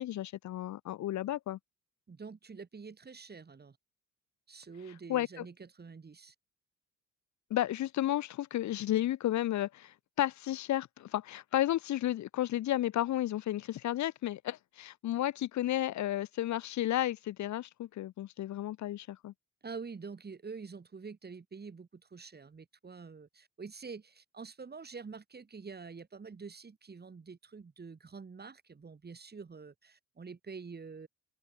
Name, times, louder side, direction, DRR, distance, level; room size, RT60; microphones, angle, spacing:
voice 1, 0.0-1.6 5.1-5.4 7.5-19.3, left 13 dB, 70° left, 0.9 m, -32 dB
voice 2, 2.1-3.8 4.5-6.3 19.6-31.1, right 5 dB, 35° right, 5.0 m, -47 dB
open air
cardioid pair, 90°, 30 cm